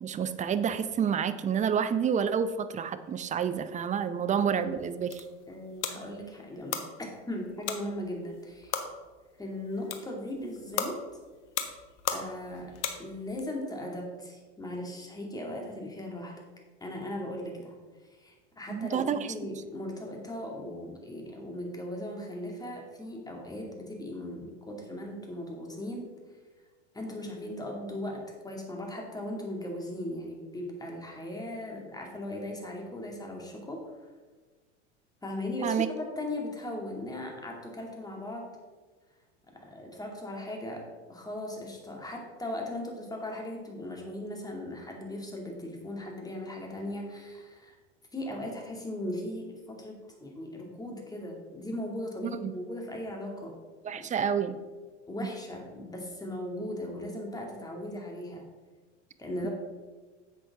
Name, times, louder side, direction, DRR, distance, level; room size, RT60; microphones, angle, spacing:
voice 1, 0.0-5.2 18.7-19.3 35.6-35.9 52.2-52.5 53.8-54.6 59.4-59.5, right 7 dB, 20° right, 12 dB, 0.6 m, -29 dB
sound 1, 4.8-13.4, left 8 dB, 70° left, 1.3 m, -38 dB
voice 2, 5.5-8.8 9.4-11.0 12.1-16.3 16.8-17.8 18.2-26.1 26.9-33.8 35.2-38.5 39.5-47.8 48.1-53.5 55.1-58.5 59.2-59.5, left 1 dB, 10° left, 0 dB, 2.5 m, -38 dB
10.5 x 7.7 x 3.7 m, 1.4 s
hypercardioid pair, 95°, 37 cm